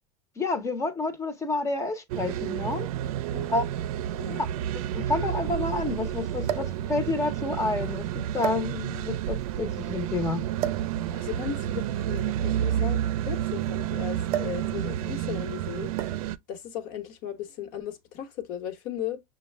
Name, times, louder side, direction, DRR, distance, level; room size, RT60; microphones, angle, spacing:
voice 1, 0.4-2.9 3.5-3.7 4.3-4.5 4.7-10.4, left 3 dB, 15° left, 0.8 m, -29 dB
sound 1, 2.1-16.4, right 11 dB, 75° right, 0.5 m, -30 dB
sound 2, 2.7-2.8 3.9-4.0 4.3-4.4 6.4-6.8 7.7-7.9 8.4-9.1 10.6-10.9 12.1-13.7 14.3-14.7 14.9-15.2 16.0-16.4 17.3-17.6, right 10 dB, 35° right, 0.6 m, -33 dB
voice 2, 11.1-15.9 16.5-19.2, left 10 dB, 50° left, 1.1 m, -36 dB
6.2 x 2.3 x 3.3 m
supercardioid pair, 145°, 18 cm